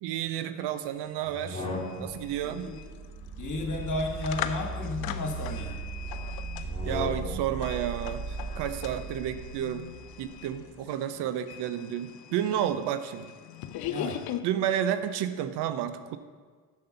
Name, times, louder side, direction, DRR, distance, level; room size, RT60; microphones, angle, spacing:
voice 1, 0.0-1.7 2.0-2.7 6.8-9.8 10.2-13.3 14.4-16.2, right 10 dB, 75° right, 11 dB, 0.7 m, -31 dB
sound 1, 0.6-0.7 0.9-14.4, left 10 dB, 65° left, 0.6 m, -41 dB
sound 2, 1.3-2.3 3.6-5.3 6.6-7.6, left 2 dB, 15° left, 2.1 m, -38 dB
sound 3, 2.0-10.8, right 5 dB, 35° right, 0.8 m, -38 dB
voice 2, 2.4-2.8 3.4-5.8 13.9-14.2, left 2 dB, 45° left, 2 dB, 1.9 m, -33 dB
7.6 x 6.7 x 5.3 m, 1.5 s
supercardioid pair, 60°, 41 cm